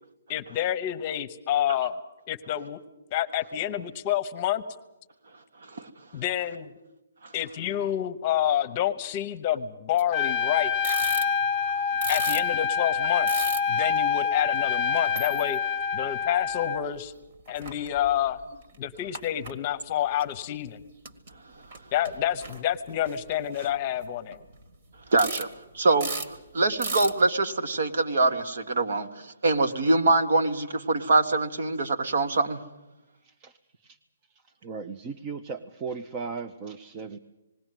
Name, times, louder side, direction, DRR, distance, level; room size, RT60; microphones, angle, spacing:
voice 1, 0.3-2.0 2.3-2.8 3.1-4.6 6.1-6.7 7.3-10.7 12.1-13.4 13.7-15.6 15.9-17.1 17.5-18.4 18.8-20.8 21.9-24.4, left 11 dB, 30° left, 12 dB, 1.0 m, -28 dB
sound 1, 10.0-10.3 10.6-11.7 12.0-14.0 14.6-14.7 15.0-15.6 16.0-16.8 17.1-17.2 17.4-18.3 18.6-19.5 20.2-20.3 21.1-21.3 21.6-21.8 22.0-24.6 25.1-25.5 25.8-26.4 26.8-27.2, right 3 dB, 40° right, 1.8 m, -35 dB
Trumpet, 10.1-16.8, left 7 dB, 10° left, 1.1 m, -26 dB
voice 2, 25.1-25.5 25.7-32.6, right 3 dB, 65° right, 6 dB, 1.6 m, -24 dB
voice 3, 34.6-37.2, right 5 dB, 25° right, 7 dB, 0.7 m, -36 dB
20.0 x 16.5 x 9.2 m, 0.99 s
hypercardioid pair, 160°, 0 cm